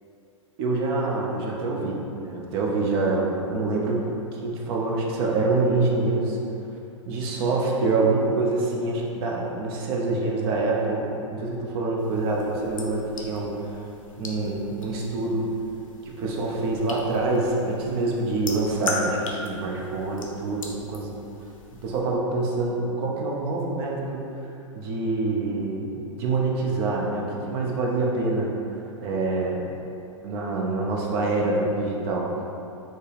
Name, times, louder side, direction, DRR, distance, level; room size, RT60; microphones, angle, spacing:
voice 1, 0.6-4.1 4.4-6.4 7.1-13.5 14.2-15.5 16.2-21.1 21.8-24.3 24.7-28.5 29.0-29.7 30.2-32.3, right 3 dB, 50° right, -2 dB, 0.7 m, -26 dB
sound 1, 12.0-22.0, left 3 dB, 80° left, 0.6 m, -38 dB
4.3 x 2.1 x 3.3 m, 2.7 s
hypercardioid pair, 105°, 17 cm